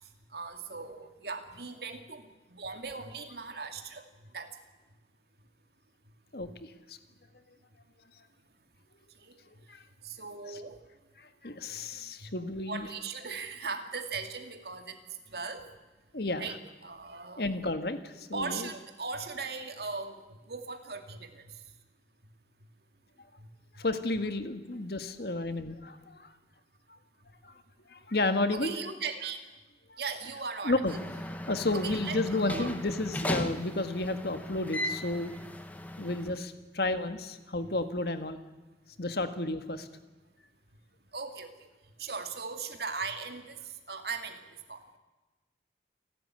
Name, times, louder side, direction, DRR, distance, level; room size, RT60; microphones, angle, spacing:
voice 1, 0.3-4.0 4.3-4.5 9.2-9.3 10.0-10.8 12.2-12.3 12.7-15.0 15.3-15.7 16.4-16.5 16.8-17.4 18.3-21.4 23.4-23.5 28.5-29.4 30.0-31.0 31.7-32.2 32.5-32.7 41.1-41.5 42.0-43.6 43.9-44.4 44.7-44.8, right 4 dB, 65° right, 6 dB, 2.3 m, -38 dB
voice 2, 6.3-7.0 9.7-9.8 10.5-10.6 11.2-12.9 16.1-16.6 17.4-18.7 23.8-26.3 26.9-27.0 27.4-27.5 27.9-28.9 29.9-30.0 30.3-31.0 31.5-35.3 36.0-38.4 39.0-39.9, left 2 dB, 60° left, 9 dB, 1.6 m, -32 dB
sound 1, 30.9-36.4, left 1 dB, 10° left, 1.4 m, -37 dB
28.5 x 12.5 x 9.7 m, 1.2 s
head